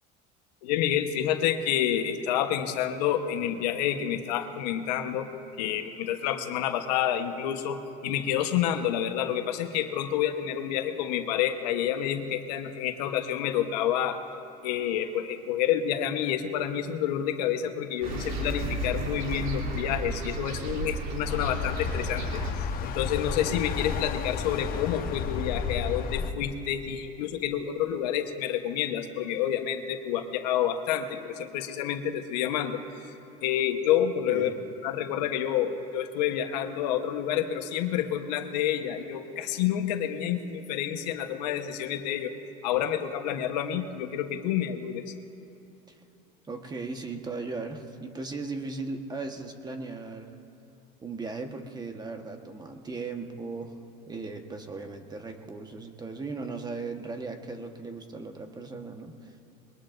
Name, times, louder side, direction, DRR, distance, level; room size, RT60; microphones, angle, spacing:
voice 1, 0.6-5.3 5.6-14.2 14.6-34.5 34.8-42.3 42.6-45.1, left 10 dB, 90° left, 6 dB, 1.2 m, -29 dB
sound 1, 18.0-22.5, right 2 dB, 45° right, 2.8 m, -33 dB
sound 2, 21.3-26.3, left 6 dB, 45° left, 1.1 m, -32 dB
voice 2, 46.5-50.3 51.0-53.8 54.1-59.4, right 3 dB, 20° right, 5 dB, 1.3 m, -37 dB
22.0 x 19.0 x 2.6 m, 3.0 s
supercardioid pair, 110°, 20 cm